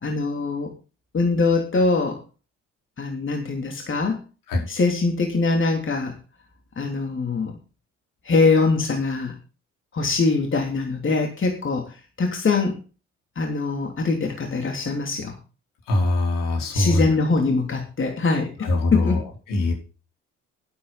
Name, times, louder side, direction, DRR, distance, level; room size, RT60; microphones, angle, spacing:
voice 1, 0.0-0.7 1.1-2.2 3.0-4.2 4.7-6.1 6.8-7.5 8.2-9.3 9.9-12.7 13.3-15.3 16.7-19.2, left 3 dB, 35° left, 2 dB, 3.2 m, -23 dB
voice 2, 15.9-17.1 18.6-19.2 19.5-19.7, left 2 dB, 60° left, 0 dB, 4.8 m, -22 dB
12.0 x 11.5 x 4.2 m, 0.35 s
figure-of-eight pair, 50°, 37 cm